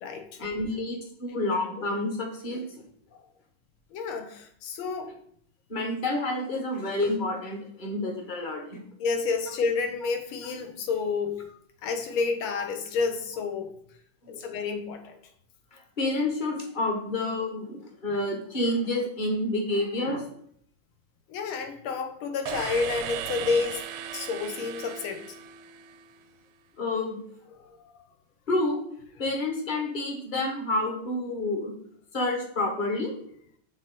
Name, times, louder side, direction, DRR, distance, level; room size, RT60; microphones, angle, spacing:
voice 1, 0.4-2.6 5.7-8.8 14.2-14.5 15.7-20.2 26.8-27.2 28.5-28.8 29.2-31.7 32.1-33.1, left 2 dB, 30° left, 2 dB, 0.9 m, -29 dB
voice 2, 3.9-5.1 9.0-11.4 11.8-13.7 14.3-15.2 21.3-25.2 27.5-28.0, left 4 dB, 85° left, 6 dB, 1.8 m, -30 dB
sound 1, 22.4-26.3, right 10 dB, 80° right, 1.4 m, -37 dB
6.0 x 3.9 x 5.2 m, 0.66 s
omnidirectional pair, 2.3 m